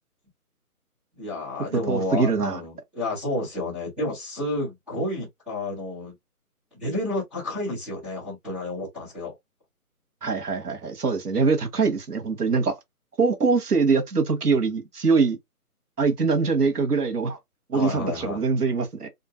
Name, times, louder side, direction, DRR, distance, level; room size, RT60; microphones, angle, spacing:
voice 1, 1.1-6.2 6.7-9.3 17.7-18.4, left 1 dB, ahead, 0.8 m, -30 dB
voice 2, 1.9-2.6 10.2-12.8 13.2-15.4 16.0-17.4 17.7-19.1, right 4 dB, 85° right, 1.1 m, -23 dB
2.6 x 2.5 x 2.4 m
figure-of-eight pair, 150°, 45 cm